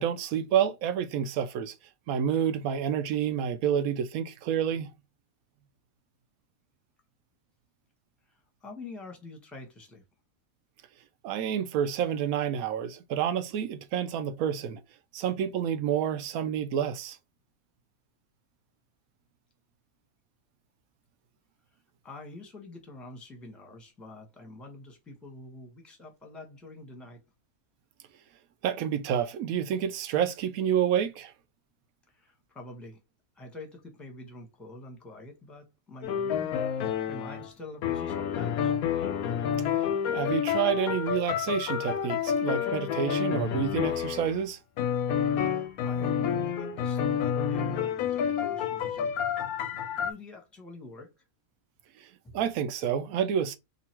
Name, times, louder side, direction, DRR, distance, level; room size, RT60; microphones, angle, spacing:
voice 1, 0.0-1.7 2.1-4.9 11.2-14.8 15.1-17.2 28.6-31.3 40.1-44.6 52.0-53.6, right 8 dB, 80° right, 1.0 m, -29 dB
voice 2, 8.2-10.0 22.0-27.2 32.1-33.0 33.4-36.7 37.1-38.7 45.4-49.2 50.0-51.2 52.2-52.4, left 2 dB, ahead, 0.8 m, -46 dB
sound 1, 36.0-37.5 37.8-44.4 44.8-50.1, left 8 dB, 90° left, 1.1 m, -29 dB
3.0 x 2.5 x 4.3 m
omnidirectional pair, 1.5 m